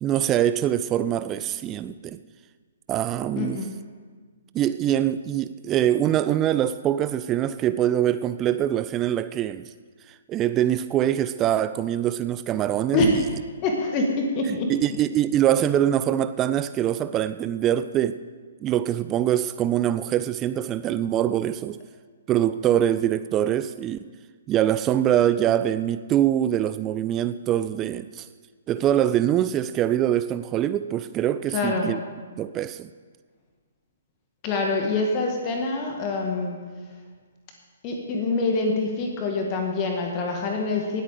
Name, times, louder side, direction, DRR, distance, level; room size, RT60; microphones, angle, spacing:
voice 1, 0.0-2.2 2.9-3.6 4.5-9.7 10.3-13.2 14.5-18.2 18.6-21.8 22.3-24.0 24.5-28.3 28.7-32.0 32.4-32.9, right 11 dB, 20° right, 13 dB, 0.4 m, -24 dB
voice 2, 3.4-3.7 12.9-13.1 13.6-14.7 31.5-31.9 34.4-36.6 37.8-41.0, left 3 dB, 30° left, 1 dB, 1.8 m, -25 dB
19.0 x 8.6 x 5.0 m, 1.5 s
figure-of-eight pair, 125°, 0 cm